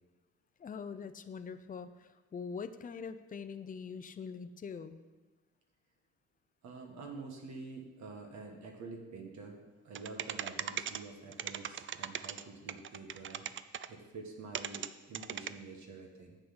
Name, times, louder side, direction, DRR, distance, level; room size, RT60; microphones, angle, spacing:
voice 1, 0.6-5.0, left 5 dB, 30° left, 11 dB, 0.5 m, -43 dB
voice 2, 6.6-9.6 9.8-13.5 13.9-16.4, right 3 dB, 65° right, 2 dB, 1.5 m, -47 dB
sound 1, 10.0-11.0 11.3-12.4 12.7-13.9 14.6-14.9 15.2-15.5, right 9 dB, 40° right, 0.4 m, -38 dB
8.0 x 6.9 x 5.8 m, 1.2 s
cardioid pair, 90°, 30 cm